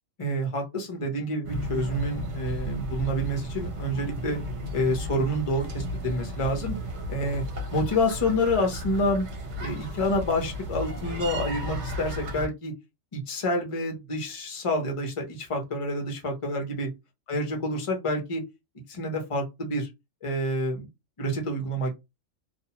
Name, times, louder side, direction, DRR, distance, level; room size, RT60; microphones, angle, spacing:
voice 1, 0.2-4.4 4.7-6.7 7.1-7.4 7.7-9.2 9.6-12.7 13.1-16.9 17.3-18.4 18.9-19.9 20.2-20.9 21.2-22.0, left 1 dB, 30° left, 2 dB, 0.7 m, -28 dB
sound 1, 1.4-12.5, equal, 65° right, 1.0 m, -34 dB
2.5 x 2.2 x 2.8 m, 0.22 s
omnidirectional pair, 1.4 m